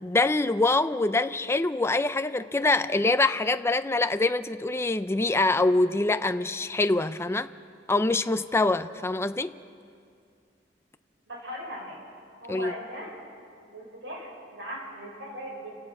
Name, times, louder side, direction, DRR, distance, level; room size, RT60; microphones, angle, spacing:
voice 1, 0.0-7.5 7.9-9.6 12.5-12.7, left 2 dB, 15° left, 0.4 m, -25 dB
voice 2, 11.3-12.0 12.4-13.2 13.6-15.7, equal, 90° right, 6.4 m, -39 dB
29.0 x 17.0 x 5.4 m
head